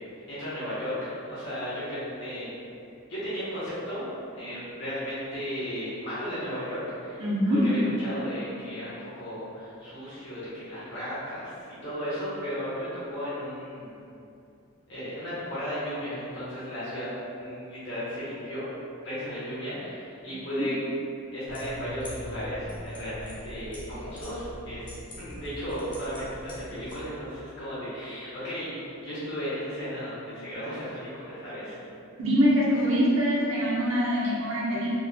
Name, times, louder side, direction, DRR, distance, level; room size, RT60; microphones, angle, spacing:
voice 1, 0.3-2.5 3.1-4.1 4.3-7.2 7.6-11.5 11.8-13.9 14.9-18.7 19.0-20.7 21.3-24.8 25.2-31.8, equal, 55° left, -11 dB, 1.2 m, -35 dB
voice 2, 7.2-7.6 20.6-20.7 32.2-34.9, equal, 70° right, -7 dB, 0.9 m, -24 dB
sound 1, 21.5-27.0, left 1 dB, 25° left, 0.7 m, -42 dB
4.4 x 3.6 x 2.2 m, 2.6 s
head